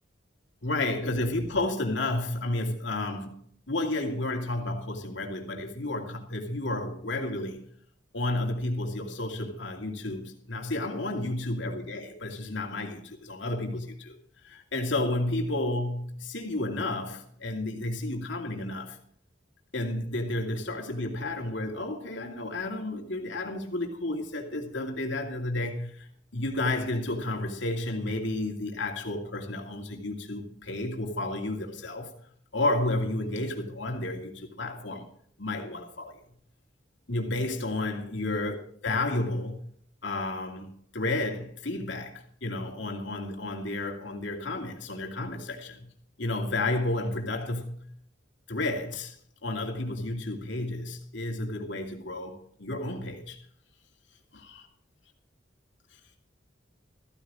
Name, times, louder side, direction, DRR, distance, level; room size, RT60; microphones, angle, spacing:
voice 1, 0.6-3.4 3.7-7.6 8.1-14.2 14.4-19.0 19.7-32.1 32.5-35.1 35.4-36.2 37.1-39.6 40.0-45.9 46.2-47.8 48.5-49.2 49.4-53.4 54.3-54.7, left 2 dB, 75° left, 2.6 m, -31 dB
15.0 x 14.5 x 3.7 m
head